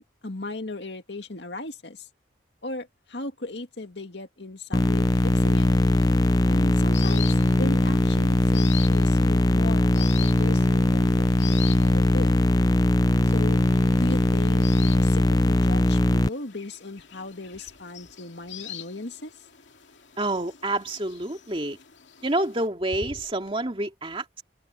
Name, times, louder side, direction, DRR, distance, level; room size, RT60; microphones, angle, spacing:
voice 1, 0.0-2.1 2.6-5.7 6.5-12.4 13.2-13.6 13.9-19.3, left 2 dB, 65° left, 2.1 m, -37 dB
sound 1, 4.7-16.3, left 1 dB, 20° left, 0.4 m, -20 dB
sound 2, 5.1-22.7, left 12 dB, 85° left, 2.4 m, -44 dB
sound 3, 16.6-20.3 21.9-22.5 22.8-23.6, equal, 35° left, 5.8 m, -50 dB
voice 2, 20.2-21.8 22.2-24.4, right 1 dB, 30° right, 2.4 m, -28 dB
open air
head